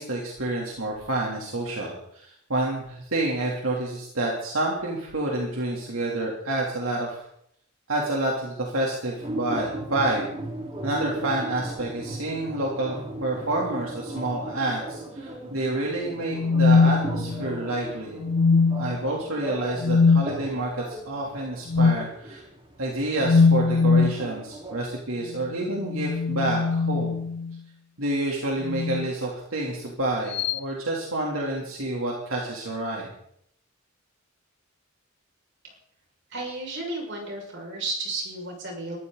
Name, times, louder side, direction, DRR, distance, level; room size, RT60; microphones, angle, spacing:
voice 1, 0.0-7.2 7.9-10.3 10.8-18.2 18.8-22.4 22.8-27.2 28.0-33.1, right 2 dB, 80° right, -3 dB, 3.5 m, -28 dB
sound 1, 9.2-24.9, right 1 dB, 25° right, 2.9 m, -37 dB
sound 2, 16.3-17.6 18.2-19.0 19.8-20.3 21.7-22.1 23.2-24.2 25.7-27.6 28.6-29.1 30.3-30.6, left 4 dB, 55° left, 0.5 m, -21 dB
voice 2, 36.3-39.0, right 2 dB, 60° right, 0 dB, 6.5 m, -33 dB
23.5 x 14.5 x 4.2 m, 0.72 s
head